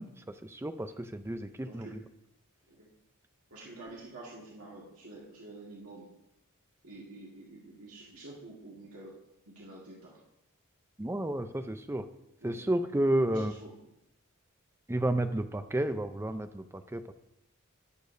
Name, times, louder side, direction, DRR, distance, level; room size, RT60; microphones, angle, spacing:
voice 1, 0.0-2.0 11.0-12.1 12.4-13.6 14.9-17.1, right 1 dB, 10° right, 9 dB, 0.5 m, -31 dB
voice 2, 1.4-2.0 2.7-2.9 3.5-6.1 6.8-9.1 9.5-10.2 12.4-12.7 13.3-13.7 15.8-16.0, right 2 dB, 85° right, -4 dB, 1.9 m, -48 dB
17.5 x 6.9 x 2.7 m, 0.83 s
head